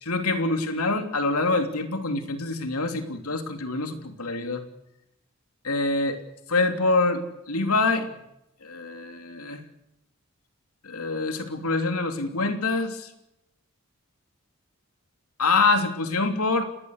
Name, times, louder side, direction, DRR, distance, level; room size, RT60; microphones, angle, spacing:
voice 1, 0.0-4.6 5.6-6.2 6.5-7.2 7.5-8.1 8.6-9.6 10.8-13.1 15.4-16.6, left 3 dB, 90° left, 6 dB, 3.1 m, -25 dB
27.5 x 19.5 x 6.6 m, 0.82 s
head